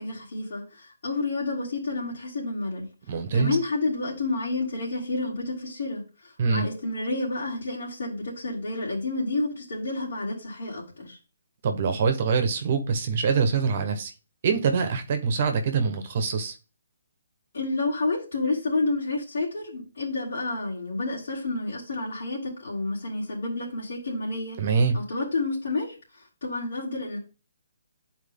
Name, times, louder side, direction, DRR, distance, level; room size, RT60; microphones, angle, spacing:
voice 1, 0.0-2.9 3.3-11.2 17.5-24.6 24.9-25.9 26.4-27.2, left 2 dB, 70° left, 3.1 m, -30 dB
voice 2, 3.1-3.6 6.4-6.7 11.6-14.1 14.4-16.5 24.6-25.0, right 5 dB, 45° right, 1.1 m, -24 dB
8.3 x 4.5 x 3.6 m
hypercardioid pair, 155°, 0 cm